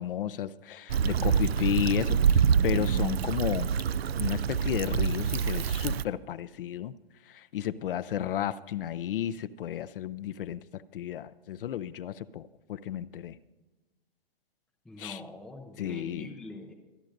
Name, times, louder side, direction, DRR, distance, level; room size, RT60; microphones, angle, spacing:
voice 1, 0.0-3.7 4.2-6.9 7.3-13.4 15.0-15.2 15.8-16.3, left 10 dB, 60° left, 15 dB, 0.6 m, -33 dB
Stream / Traffic noise roadway noise / Trickle dribble, 0.9-6.0, right 7 dB, 85° right, 0.5 m, -26 dB
voice 2, 14.9-16.7, left 2 dB, ahead, 3 dB, 0.4 m, -44 dB
24.5 x 10.5 x 2.6 m, 1.2 s
hypercardioid pair, 135°, 30 cm